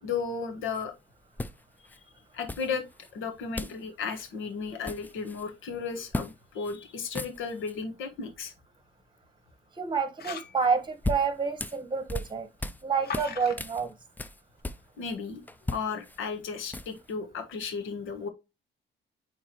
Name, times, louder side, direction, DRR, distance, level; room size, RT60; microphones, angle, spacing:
voice 1, 0.0-0.9 2.3-2.8 3.1-8.5 15.0-15.4 15.7-18.3, left 5 dB, 80° left, 1.5 m, -34 dB
sound 1, 0.7-0.8 1.4-2.0 2.5-3.1 3.6-3.8 4.1-4.3 4.6-5.5 6.1-6.3 6.6-6.8 7.0-7.8 10.6-12.8 13.1-15.2 15.5-17.1, left 2 dB, 10° left, 0.4 m, -37 dB
voice 2, 9.8-12.5 12.8-13.9, right 5 dB, 25° right, 1.3 m, -28 dB
sound 2, 10.1-10.6 13.0-13.6, left 6 dB, 55° left, 1.0 m, -38 dB
8.9 x 3.6 x 3.0 m
cardioid pair, 90°, 20 cm